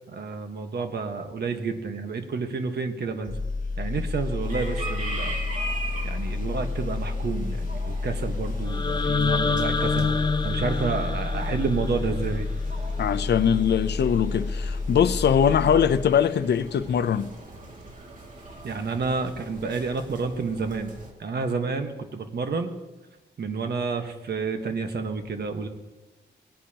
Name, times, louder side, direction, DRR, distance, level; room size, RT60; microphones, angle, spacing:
voice 1, 0.1-3.4 3.8-5.4 6.0-10.1 10.4-12.5 18.6-20.9 21.2-22.7 23.4-25.7, right 4 dB, 65° right, 1.4 m, -30 dB
sound 1, 3.2-16.4 16.7-16.9, left 3 dB, 50° left, 1.0 m, -30 dB
sound 2, 4.4-21.1, right 1 dB, 45° right, 2.4 m, -40 dB
sound 3, 8.7-12.7, left 4 dB, 25° left, 0.5 m, -27 dB
voice 2, 13.0-17.3, left 8 dB, 70° left, 0.6 m, -22 dB
18.5 x 10.0 x 2.9 m
wide cardioid pair, 125°, 18 cm